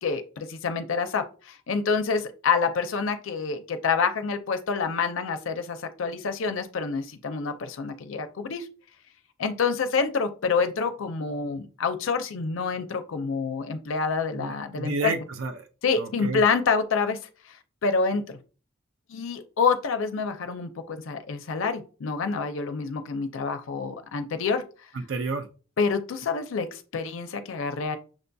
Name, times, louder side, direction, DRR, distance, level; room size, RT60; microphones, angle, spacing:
voice 1, 0.0-8.7 9.4-15.1 15.8-17.2 17.8-18.2 19.1-24.6 25.8-28.0, left 5 dB, 75° left, 8 dB, 0.5 m, -27 dB
voice 2, 14.3-15.7 16.0-16.4 24.9-25.5, right 3 dB, 70° right, 6 dB, 0.4 m, -31 dB
6.1 x 2.6 x 2.2 m, 0.36 s
head